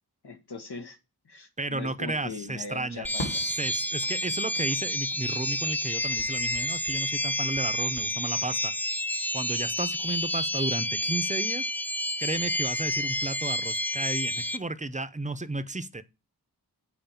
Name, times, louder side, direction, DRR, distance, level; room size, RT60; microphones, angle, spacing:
voice 1, 0.2-1.0 1.2-3.2, left 4 dB, 80° left, 1.6 m, -40 dB
voice 2, 1.6-8.7 9.3-11.7 12.2-16.0, right 2 dB, 20° right, 0.7 m, -33 dB
sound 1, 3.0-14.6, left 1 dB, 5° left, 0.4 m, -29 dB
Fireworks, 3.2-5.8 6.1-8.1, equal, 65° left, 2.5 m, -43 dB
8.0 x 4.7 x 7.3 m
wide cardioid pair, 60°, 39 cm